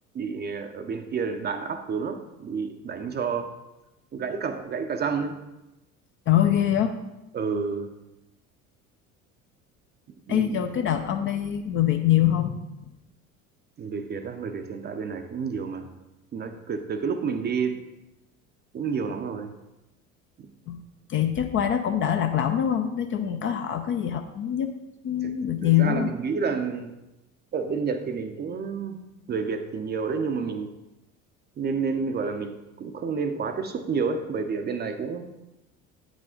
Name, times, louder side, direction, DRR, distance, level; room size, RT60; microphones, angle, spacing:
voice 1, 0.1-3.5 4.1-5.4 7.3-7.9 10.3-10.6 13.8-15.9 16.3-17.8 18.7-19.6 20.4-20.5 25.2-25.3 25.6-26.9 27.5-29.0 29.3-30.7 31.6-35.3, right 5 dB, 25° right, 8 dB, 0.6 m, -30 dB
voice 2, 6.3-7.0 10.3-12.9 20.7-20.8 21.1-24.7 25.0-26.1, left 10 dB, 30° left, 7 dB, 0.5 m, -24 dB
9.0 x 5.1 x 3.8 m, 0.95 s
figure-of-eight pair, 65°, 43 cm